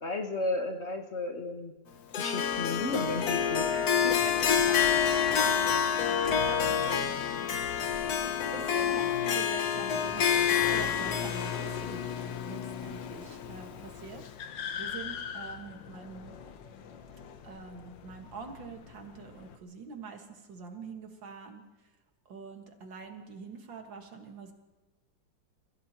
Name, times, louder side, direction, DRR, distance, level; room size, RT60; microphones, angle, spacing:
voice 1, 0.0-1.7 2.2-3.7 13.1-13.2, left 2 dB, 40° left, 4 dB, 1.4 m, -33 dB
Harp, 2.1-13.4, left 8 dB, 60° left, 1.5 m, -28 dB
sound 1, 2.4-19.6, left 8 dB, 75° left, 1.6 m, -41 dB
voice 2, 3.7-5.0 5.4-5.5 5.9-7.1 8.5-16.4 17.4-21.6 22.3-24.5, right 4 dB, 75° right, 4 dB, 2.5 m, -45 dB
30.0 x 15.5 x 3.0 m, 1.1 s
omnidirectional pair, 2.0 m